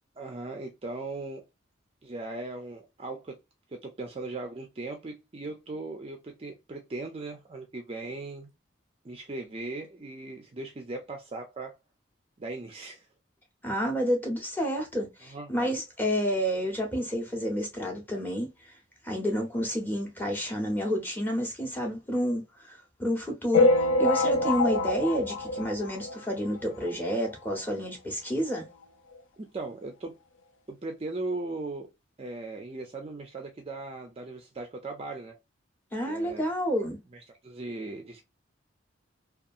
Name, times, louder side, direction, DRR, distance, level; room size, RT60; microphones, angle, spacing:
voice 1, 0.2-1.5 2.0-3.4 3.7-8.5 9.0-11.7 12.4-13.0 15.3-15.7 29.4-30.1 30.7-31.9 32.2-35.4 36.1-36.5 37.3-38.2, right 2 dB, 30° right, 0.4 m, -38 dB
voice 2, 13.6-18.8 19.0-28.7 35.9-37.0, equal, 10° left, 0.7 m, -30 dB
sound 1, 23.5-26.4 26.9-27.0 27.1-27.3 27.6-27.7 28.6-28.7 29.1-29.2, left 2 dB, 75° left, 0.5 m, -25 dB
2.7 x 2.3 x 2.5 m
head